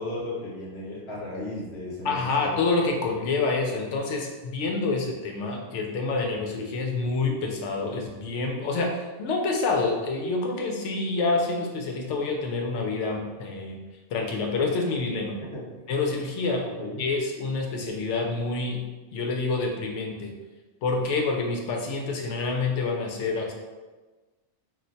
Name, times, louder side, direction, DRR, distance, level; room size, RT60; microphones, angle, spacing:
voice 1, 0.0-2.6 15.5-15.8 16.6-17.0, left 1 dB, 65° left, -6 dB, 1.1 m, -35 dB
voice 2, 2.0-13.8 14.1-15.4 15.9-16.6 17.0-18.8 19.1-20.3 20.8-23.5, left 3 dB, 90° left, 1 dB, 0.9 m, -27 dB
2.4 x 2.2 x 3.9 m, 1.3 s
omnidirectional pair, 1.2 m